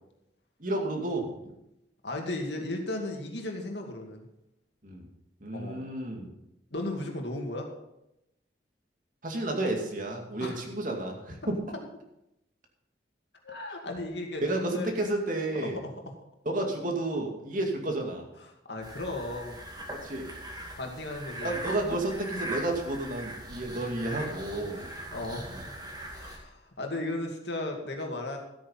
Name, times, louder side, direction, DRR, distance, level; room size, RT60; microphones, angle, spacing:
voice 1, 0.6-1.5 4.8-5.1 5.4-6.3 9.2-11.5 14.4-15.8 16.5-18.3 19.9-20.3 21.4-24.9, right 2 dB, 45° right, 2 dB, 2.3 m, -31 dB
voice 2, 2.0-4.3 5.5-5.8 6.7-7.7 10.4-10.6 13.4-14.9 15.6-15.9 18.4-19.6 20.8-21.6 21.9-22.0 24.7-25.5 26.1-28.4, left 2 dB, 75° left, 2 dB, 2.3 m, -36 dB
sound 1, 18.8-26.4, right 1 dB, 25° right, 2.4 m, -40 dB
13.5 x 8.7 x 5.6 m, 0.86 s
head